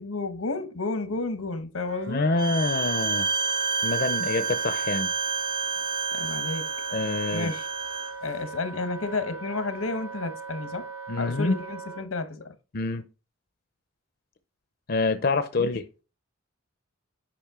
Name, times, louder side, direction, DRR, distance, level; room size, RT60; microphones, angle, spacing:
voice 1, 0.0-2.2 6.1-6.7 7.3-7.7 8.2-10.9 11.2-12.5 15.6-15.7, left 3 dB, 85° left, 1.1 m, -31 dB
Wind instrument woodwind instrument, 1.8-12.1, right 3 dB, 80° right, 1.4 m, -40 dB
voice 2, 2.1-3.3 3.8-5.1 6.9-7.5 11.1-11.6 12.7-13.0 14.9-15.8, left 3 dB, 45° left, 0.6 m, -26 dB
Bowed string instrument, 2.4-8.1, right 5 dB, 20° right, 0.4 m, -29 dB
8.7 x 5.3 x 3.7 m
head